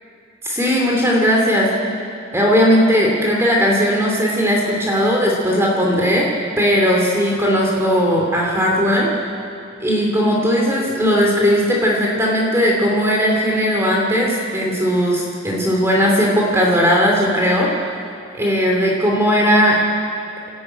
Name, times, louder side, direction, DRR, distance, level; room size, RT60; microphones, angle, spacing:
voice 1, 0.4-1.7 2.3-6.3 6.6-9.1 9.8-17.7 18.4-19.8, equal, 15° right, -2 dB, 2.8 m, -17 dB
28.0 x 14.5 x 9.0 m, 2.5 s
head